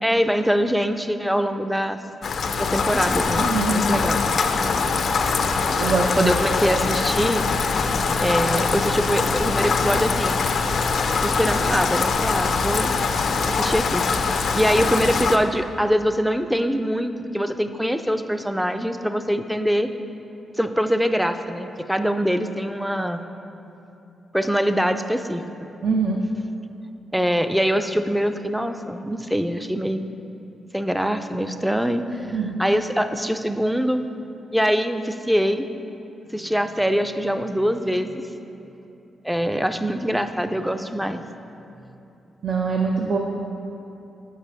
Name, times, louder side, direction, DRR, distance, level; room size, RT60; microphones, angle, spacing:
voice 1, 0.0-2.0 2.6-3.4 3.7-4.2 6.2-7.4 8.2-10.4 11.2-12.9 13.5-19.9 20.6-23.2 24.3-25.7 27.1-30.0 30.7-34.0 34.5-35.7 36.3-38.2 39.2-41.3, equal, 5° right, 8 dB, 0.4 m, -23 dB
Rain, 2.2-15.4, left 4 dB, 65° left, 0.4 m, -23 dB
voice 2, 3.4-3.8 5.8-6.4 25.8-26.2 32.2-32.6 42.4-43.2, right 4 dB, 65° right, 0 dB, 0.5 m, -23 dB
5.5 x 4.8 x 6.1 m, 2.9 s
cardioid pair, 65°, 0 cm